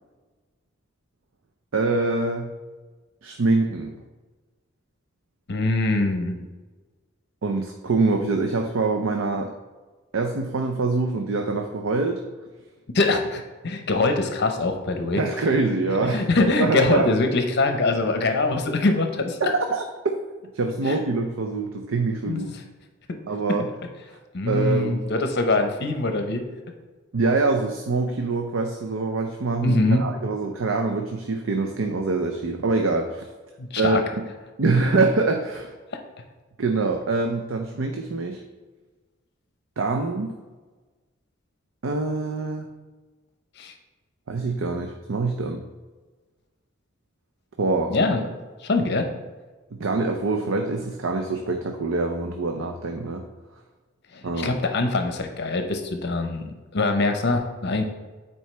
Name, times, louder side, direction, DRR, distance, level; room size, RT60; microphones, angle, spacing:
voice 1, 1.7-2.5 3.2-4.0 7.4-9.5 10.1-12.2 15.1-16.2 16.6-17.1 19.4-19.8 20.5-22.5 23.3-23.7 24.4-25.0 27.1-33.3 33.8-34.0 34.6-35.7 36.6-38.4 39.8-40.3 41.8-42.7 44.3-45.6 47.6-47.9 49.7-53.2 54.2-54.5, right 3 dB, 75° right, 4 dB, 0.6 m, -24 dB
voice 2, 5.5-6.4 12.9-15.2 16.1-19.5 20.9-21.0 22.3-22.4 23.5-23.6 24.3-26.4 29.6-30.0 33.6-34.0 43.6-43.7 47.9-48.3 48.6-49.0 54.1-57.8, left 2 dB, 55° left, 5 dB, 0.8 m, -23 dB
9.4 x 4.5 x 3.3 m, 1.3 s
head